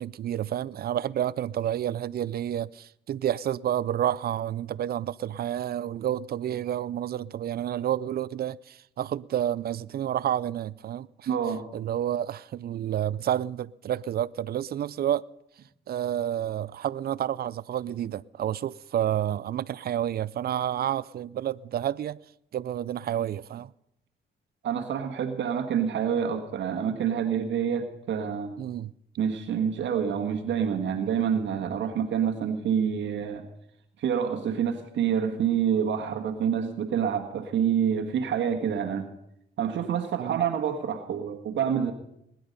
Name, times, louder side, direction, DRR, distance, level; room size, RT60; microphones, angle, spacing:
voice 1, 0.0-11.3 11.7-15.3 15.9-22.2 22.5-23.7 28.6-28.9 40.2-40.4, right 11 dB, 50° right, 0.5 m, -30 dB
voice 2, 11.3-11.7 24.6-28.6 29.2-33.5 34.0-39.1 39.6-41.9, right 8 dB, 70° right, 1.5 m, -27 dB
21.0 x 11.0 x 5.3 m
cardioid pair, 90°, 20 cm